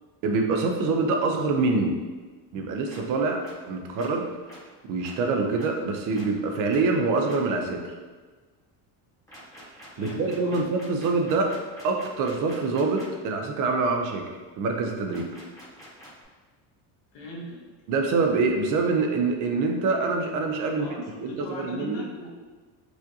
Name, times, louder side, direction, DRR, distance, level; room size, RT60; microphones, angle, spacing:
voice 1, 0.2-2.0 2.5-4.3 4.9-8.0 10.0-14.3 14.6-15.3 17.9-20.9 21.2-22.1, right 3 dB, 50° right, 3 dB, 0.4 m, -25 dB
sound 1, 2.9-3.0 3.4-3.5 4.0-4.1 4.5-4.6 5.0-5.1 5.6-5.7 6.1-6.2 6.7-6.8 7.3-7.4 9.3-13.1 15.1-16.2, equal, 5° left, 0.9 m, -47 dB
voice 2, 9.9-10.7 17.1-17.6 20.6-22.3, left 1 dB, 65° left, -2 dB, 1.0 m, -39 dB
4.8 x 2.5 x 2.7 m, 1.3 s
cardioid pair, 160°, 42 cm